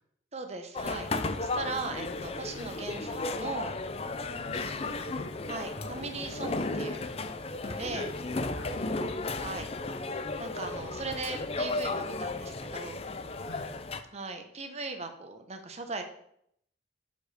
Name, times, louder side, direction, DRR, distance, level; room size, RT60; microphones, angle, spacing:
voice 1, 0.3-1.1 1.4-3.8 4.7-4.8 5.5-7.0 7.6-8.1 9.4-9.7 10.4-13.0 14.1-16.0, right 3 dB, 35° right, 6 dB, 1.0 m, -38 dB
sound 1, 0.7-14.0, left 2 dB, 35° left, 0.5 m, -34 dB
voice 2, 4.4-5.3 7.9-8.2 8.5-8.8 13.4-13.7, left 1 dB, 75° left, -4 dB, 1.6 m, -46 dB
6.3 x 5.2 x 6.6 m, 0.70 s
head